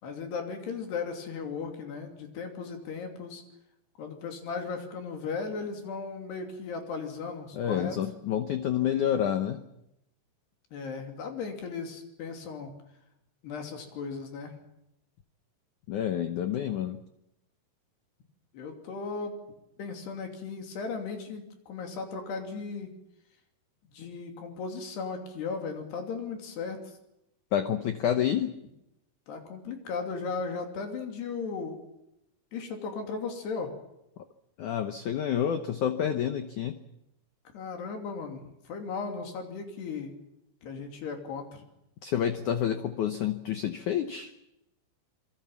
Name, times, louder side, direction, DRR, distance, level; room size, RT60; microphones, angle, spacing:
voice 1, 0.0-3.4 4.0-8.0 10.7-12.7 13.4-14.6 18.5-19.3 19.8-22.9 23.9-26.8 29.3-31.8 32.5-33.7 37.5-40.2 40.6-41.6, left 5 dB, 65° left, 4 dB, 4.9 m, -36 dB
voice 2, 7.5-9.6 15.9-17.0 27.5-28.5 34.6-36.8 42.0-44.3, left 9 dB, 85° left, 9 dB, 1.7 m, -28 dB
26.0 x 23.0 x 7.3 m, 0.85 s
omnidirectional pair, 5.1 m